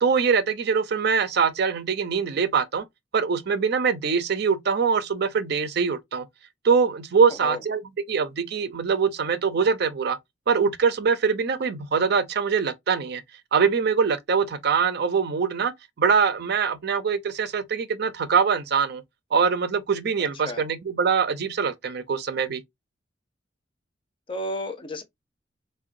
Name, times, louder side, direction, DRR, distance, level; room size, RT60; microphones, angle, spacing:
voice 1, 0.0-2.8 3.1-6.3 6.6-7.8 8.1-10.2 10.5-13.2 13.5-15.7 16.0-19.0 19.3-22.6, right 6 dB, 60° right, 0.5 m, -23 dB
voice 2, 24.3-25.0, left 1 dB, 30° left, 0.6 m, -31 dB
3.6 x 2.2 x 2.5 m
head